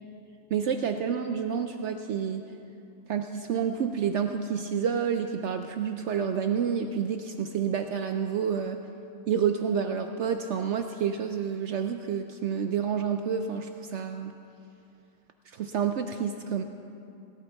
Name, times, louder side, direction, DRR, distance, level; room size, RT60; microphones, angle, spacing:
voice 1, 0.5-2.4 3.1-8.8 9.3-14.3 15.5-16.6, right 7 dB, 70° right, 6 dB, 0.6 m, -29 dB
17.0 x 12.0 x 3.5 m, 2.6 s
omnidirectional pair, 1.7 m